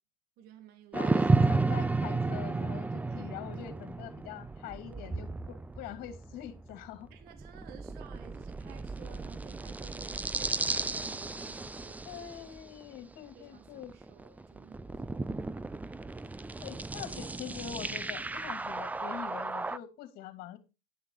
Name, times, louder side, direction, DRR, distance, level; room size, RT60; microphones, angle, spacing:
voice 1, 0.4-1.5 3.0-3.4 4.9-5.2 7.1-12.2 13.3-15.4 16.4-16.8, right 8 dB, 60° right, 1.7 m, -55 dB
voice 2, 0.9-7.1 12.0-13.9 16.6-20.6, left 11 dB, 55° left, 2.6 m, -44 dB
sound 1, 0.9-13.1 13.8-19.8, right 3 dB, 10° right, 0.5 m, -33 dB
11.5 x 6.0 x 4.8 m
supercardioid pair, 115°, 18 cm